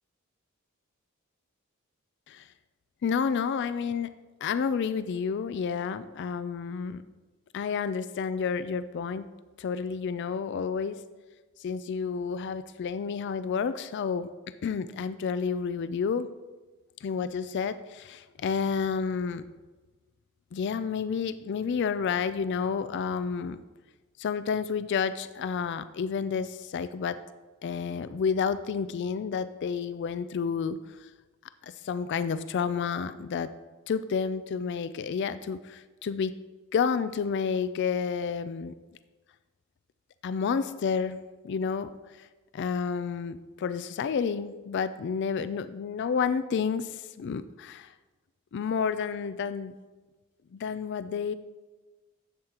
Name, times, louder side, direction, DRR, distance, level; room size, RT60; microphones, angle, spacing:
voice 1, 3.0-4.1 4.4-7.0 7.5-9.3 9.6-11.0 11.6-14.3 14.6-16.3 17.0-19.4 20.5-23.6 24.2-27.2 27.6-31.1 31.6-33.5 33.9-36.3 36.7-38.7 40.2-41.2 41.4-41.9 42.2-42.3 42.5-47.9 48.5-49.8 50.5-51.3, left 6 dB, 55° left, 13 dB, 0.4 m, -30 dB
11.0 x 7.9 x 2.9 m, 1.2 s
head